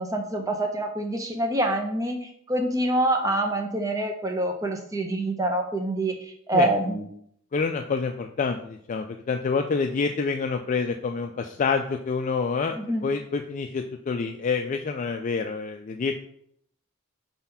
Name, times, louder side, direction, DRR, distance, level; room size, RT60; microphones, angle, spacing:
voice 1, 0.0-7.1 12.7-13.1, right 1 dB, 15° right, 3 dB, 0.8 m, -26 dB
voice 2, 7.5-12.8 13.0-16.1, left 5 dB, 35° left, 4 dB, 0.3 m, -27 dB
4.3 x 4.0 x 5.6 m, 0.67 s
head